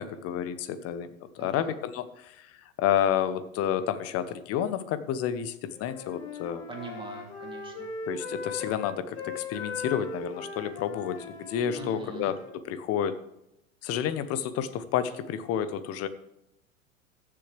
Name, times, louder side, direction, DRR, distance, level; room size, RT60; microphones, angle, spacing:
voice 1, 0.0-2.5 2.8-6.6 8.1-12.3 12.7-13.2 13.8-16.1, left 9 dB, 35° left, 13 dB, 0.9 m, -30 dB
voice 2, 1.4-1.7 6.7-7.9 11.7-12.3, right 4 dB, 10° right, 0 dB, 2.8 m, -42 dB
Wind instrument woodwind instrument, 5.7-12.6, left 4 dB, 60° left, 3.2 m, -39 dB
15.0 x 7.0 x 3.3 m, 0.86 s
hypercardioid pair, 100°, 40 cm